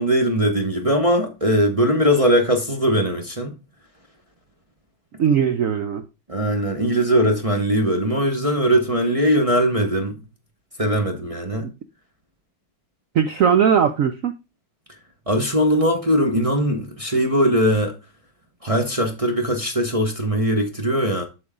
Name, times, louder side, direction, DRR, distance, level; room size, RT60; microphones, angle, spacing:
voice 1, 0.0-3.6 6.3-10.1 10.8-11.7 15.3-18.0 18.6-21.2, equal, 25° right, 0.7 m, -20 dB
voice 2, 5.2-6.1 11.6-11.7 13.1-14.3, right 7 dB, 90° right, 0.7 m, -19 dB
7.8 x 6.3 x 3.6 m
omnidirectional pair, 2.2 m